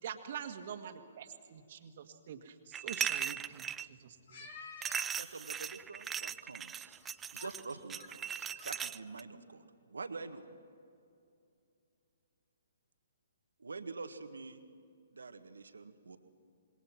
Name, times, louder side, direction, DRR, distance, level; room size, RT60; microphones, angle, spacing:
voice 1, 0.0-2.6 2.8-4.4, right 8 dB, 50° right, 7 dB, 1.9 m, -45 dB
sound 1, 2.7-3.9 4.8-9.2, right 8 dB, 15° right, 0.4 m, -38 dB
voice 2, 4.3-5.1 6.3-6.4 7.0-7.6 8.0-8.7, left 4 dB, 60° left, 2 dB, 4.0 m, -51 dB
voice 3, 5.2-7.0 7.3-8.0 8.6-10.4 13.6-14.6 15.1-16.2, right 4 dB, 80° right, 8 dB, 1.6 m, -46 dB
26.5 x 21.5 x 6.1 m, 2.5 s
hypercardioid pair, 135°, 0 cm